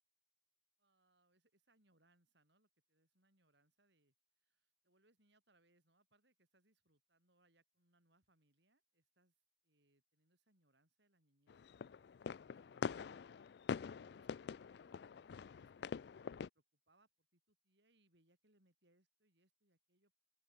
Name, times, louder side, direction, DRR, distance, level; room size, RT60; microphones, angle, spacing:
voice 1, 0.8-9.4 9.6-20.2, right 2 dB, 60° right, 7.1 m, -78 dB
sound 1, 11.5-16.5, left 6 dB, 55° left, 0.3 m, -45 dB
open air
head